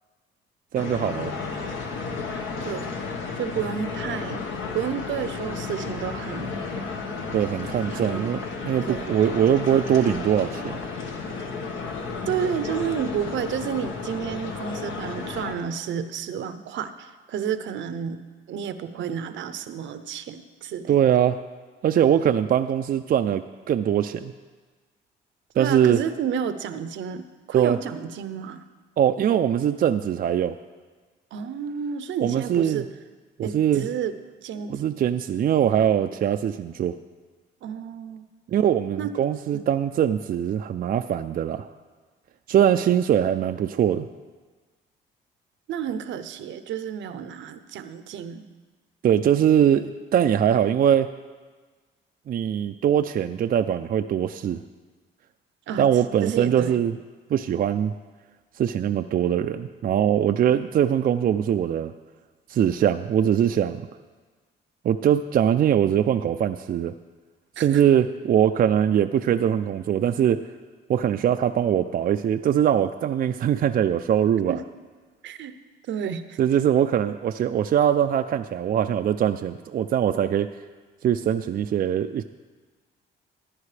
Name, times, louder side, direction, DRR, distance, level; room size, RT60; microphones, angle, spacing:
sound 1, 0.7-15.5, left 4 dB, 75° left, 1.4 m, -33 dB
voice 1, 0.7-1.3 7.3-10.8 20.9-21.4 21.8-23.4 23.7-24.3 25.6-26.0 27.5-27.8 29.0-30.6 32.2-32.8 33.4-33.9 34.7-36.9 38.5-41.7 42.5-44.0 49.0-51.1 52.3-54.6 55.8-57.0 57.3-57.9 58.6-61.9 62.5-63.8 64.8-66.9 67.6-70.4 70.9-74.6 76.4-80.5 81.0-82.2, right 9 dB, 50° right, 8 dB, 0.4 m, -22 dB
voice 2, 2.6-2.9 3.4-4.4 4.7-6.5 7.9-8.3 8.9-9.1 12.3-21.0 25.5-28.6 31.3-32.9 33.4-34.1 34.4-34.7 37.6-38.3 39.0-39.2 39.5-39.6 45.7-48.4 55.7-55.9 56.2-56.8 67.6-67.8 74.5-74.6 75.2-75.6 75.9-76.4, right 8 dB, 70° right, 11 dB, 0.7 m, -31 dB
14.5 x 10.5 x 3.3 m, 1.4 s
cardioid pair, 90°, 20 cm